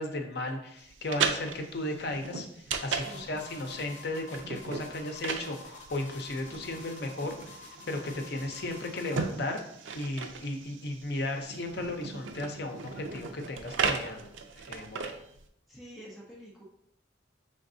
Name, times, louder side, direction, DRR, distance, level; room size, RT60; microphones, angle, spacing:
voice 1, 0.0-9.6 9.9-15.1, left 1 dB, 55° left, 4 dB, 0.6 m, -35 dB
sound 1, 0.8-15.5, right 5 dB, 90° right, 0.4 m, -37 dB
sound 2, 2.9-9.3, left 3 dB, 40° left, 1.0 m, -49 dB
voice 2, 3.0-3.4 15.7-16.6, right 1 dB, ahead, -5 dB, 0.7 m, -48 dB
5.1 x 3.4 x 2.6 m, 0.76 s
head